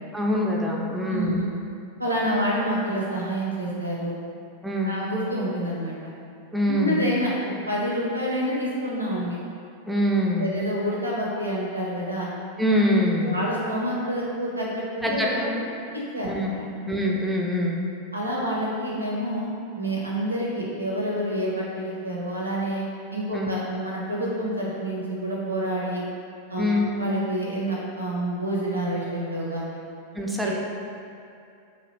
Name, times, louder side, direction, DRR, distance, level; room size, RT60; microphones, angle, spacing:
voice 1, 0.1-1.4 4.6-4.9 6.5-7.1 9.9-10.5 12.6-13.4 15.0-15.5 16.3-16.5 16.9-17.8 23.3-23.5 26.6-26.9 30.1-30.5, left 1 dB, 5° right, -2 dB, 0.4 m, -24 dB
voice 2, 1.1-1.5 2.0-4.1 4.8-5.9 6.7-7.3 7.7-9.4 10.4-12.3 13.2-15.6 15.9-16.3 16.5-16.6 18.1-19.5 19.8-22.8 23.1-26.0 26.5-29.8 30.4-30.5, equal, 85° right, -5 dB, 0.6 m, -28 dB
2.8 x 2.5 x 3.1 m, 2.6 s
figure-of-eight pair, 90°, 0 cm